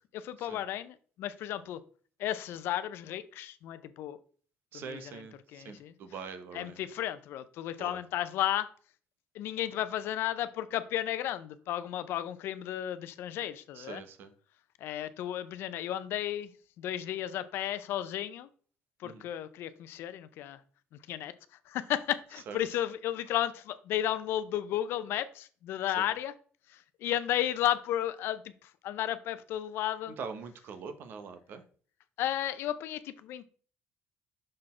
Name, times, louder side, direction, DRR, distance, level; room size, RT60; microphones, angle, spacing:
voice 1, 0.1-1.8 2.2-4.2 4.7-5.2 5.5-5.9 6.5-8.7 9.3-14.0 14.8-16.5 16.8-18.5 19.0-20.6 21.1-21.3 21.7-26.3 26.7-30.2 32.2-33.5, left 12 dB, 75° left, 14 dB, 0.5 m, -33 dB
voice 2, 4.7-6.8 7.8-8.0 13.7-14.3 19.0-19.2 22.5-22.6 26.0-26.1 30.2-31.6, right 5 dB, 65° right, 9 dB, 0.9 m, -43 dB
6.4 x 4.1 x 4.3 m, 0.43 s
cardioid pair, 110°, 4 cm